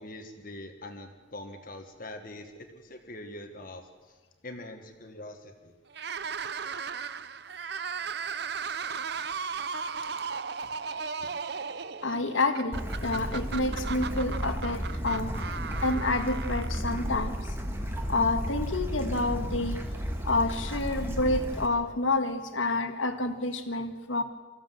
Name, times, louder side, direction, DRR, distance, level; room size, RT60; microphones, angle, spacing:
voice 1, 0.0-4.2 4.4-5.7, left 1 dB, 45° left, 5 dB, 1.7 m, -43 dB
sound 1, 5.9-17.2, right 6 dB, 55° right, 0.7 m, -36 dB
voice 2, 12.0-15.3 15.8-17.5 18.1-19.8 20.3-24.2, left 2 dB, 85° left, 8 dB, 1.7 m, -29 dB
Bird / Stream, 12.7-21.7, equal, 10° right, 1.9 m, -33 dB
24.5 x 15.0 x 7.8 m, 1.3 s
head